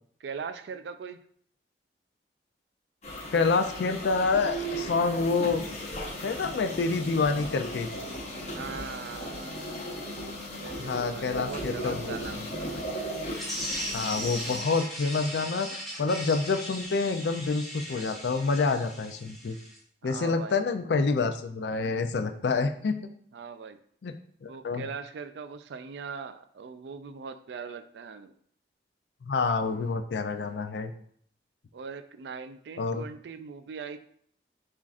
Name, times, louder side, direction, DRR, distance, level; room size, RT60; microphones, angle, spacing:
voice 1, 0.2-1.2 8.5-9.6 10.5-12.9 20.0-20.7 23.3-23.8 24.5-28.3 31.7-34.0, right 5 dB, 80° right, 10 dB, 0.4 m, -40 dB
sound 1, 3.0-14.6, equal, 40° left, 1.0 m, -37 dB
voice 2, 3.3-5.6 6.2-7.9 10.8-12.2 13.9-19.6 20.0-23.0 24.0-24.1 24.4-24.9 29.2-30.9 32.8-33.0, left 4 dB, 75° left, 7 dB, 0.4 m, -27 dB
sound 2, 13.3-19.8, equal, ahead, 0.9 m, -38 dB
7.2 x 2.5 x 2.4 m, 0.63 s
head